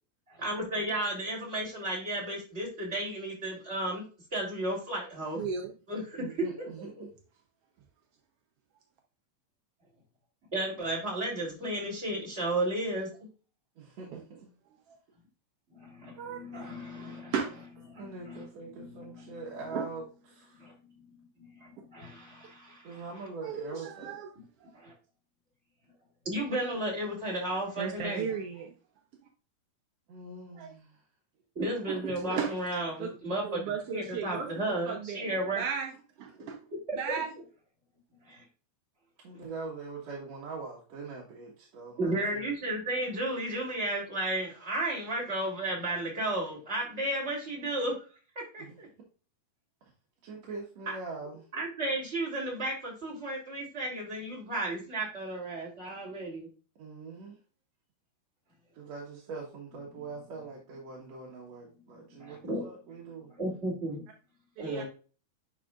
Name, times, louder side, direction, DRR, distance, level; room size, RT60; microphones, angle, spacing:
voice 1, 0.3-4.0 4.3-5.4 5.9-6.9 10.5-13.1 15.7-17.3 17.9-19.7 20.5-23.0 24.7-24.9 26.2-28.3 31.5-35.6 36.4-36.5 36.9-37.2 38.2-38.4 42.0-47.9 48.3-48.9 51.5-56.5 61.8-62.6 63.3-64.0 64.6-64.8, right 1 dB, 20° right, -3 dB, 3.3 m, -34 dB
voice 2, 5.4-5.7 16.2-16.7 17.0-17.8 19.7-19.9 23.4-24.3 24.6-24.7 27.8-28.7 30.5-30.7 31.9-32.6 33.0-33.1 33.4-34.5 34.8-35.9 36.2-36.6 36.9-37.3 64.6-64.8, right 6 dB, 75° right, 2 dB, 1.4 m, -35 dB
voice 3, 6.2-7.1 13.8-14.5 18.0-20.7 22.8-24.2 30.1-31.0 39.2-42.5 48.6-48.8 50.2-51.5 56.1-56.2 56.8-57.4 58.7-63.3, right 4 dB, 60° right, -3 dB, 2.4 m, -43 dB
10.0 x 4.9 x 2.5 m, 0.36 s
omnidirectional pair, 3.8 m